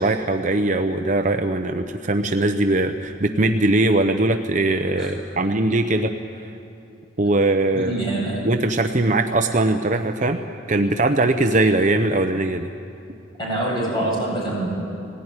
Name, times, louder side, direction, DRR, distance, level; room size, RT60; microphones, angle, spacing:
voice 1, 0.0-6.1 7.2-8.0 8.4-10.4 10.7-12.7, right 2 dB, 40° right, 5 dB, 0.7 m, -20 dB
voice 2, 7.7-8.4 13.4-14.7, right 1 dB, 20° left, -5 dB, 7.7 m, -25 dB
19.0 x 18.0 x 9.7 m, 2.7 s
head